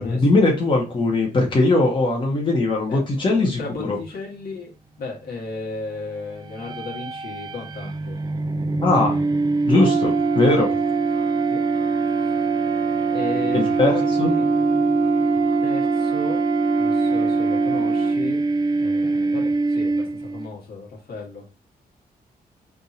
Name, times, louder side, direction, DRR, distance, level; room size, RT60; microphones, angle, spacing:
voice 1, 0.0-3.6 3.9-4.0 8.8-9.2 9.7-10.7 13.5-13.9 14.2-14.3, left 2 dB, 30° left, 1.2 m, -20 dB
voice 2, 2.9-8.2 11.5-11.6 12.3-12.4 13.1-14.5 15.6-16.4 16.7-18.4 18.8-21.4, left 4 dB, 75° left, 1.5 m, -35 dB
sound 1, 6.4-20.5, right 3 dB, 25° right, 0.4 m, -23 dB
Brass instrument, 9.7-18.2, right 11 dB, 65° right, 0.9 m, -27 dB
3.5 x 2.7 x 4.1 m
wide cardioid pair, 135°, 16 cm